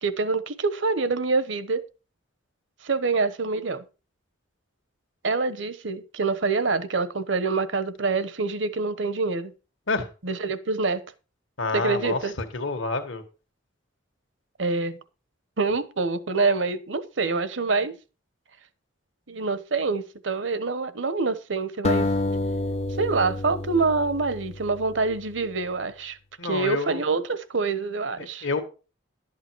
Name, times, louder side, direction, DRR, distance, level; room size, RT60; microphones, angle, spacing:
voice 1, 0.0-1.9 2.8-3.8 5.2-9.5 10.2-11.0 11.7-12.3 14.6-15.0 15.6-18.0 19.3-22.1 23.0-26.2 26.4-28.5, right 4 dB, 70° right, 1.0 m, -26 dB
voice 2, 11.6-13.2 26.4-27.0 28.2-28.6, left 3 dB, 75° left, 1.6 m, -28 dB
sound 1, 21.8-25.1, left 2 dB, 35° left, 0.6 m, -28 dB
12.0 x 8.0 x 4.6 m
head